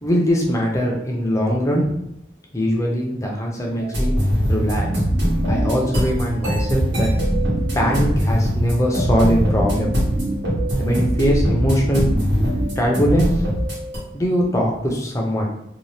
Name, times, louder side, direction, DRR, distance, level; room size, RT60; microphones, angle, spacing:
voice 1, 0.0-1.9 2.5-4.1 4.5-4.9 5.5-7.1 7.7-9.9 10.8-12.1 12.8-13.3 14.1-15.5, equal, 15° left, -1 dB, 0.5 m, -21 dB
sound 1, 3.8-14.0, equal, 85° right, 1.1 m, -23 dB
sound 2, 4.3-13.5, right 1 dB, 65° right, 0.5 m, -26 dB
2.7 x 2.2 x 3.2 m, 0.77 s
head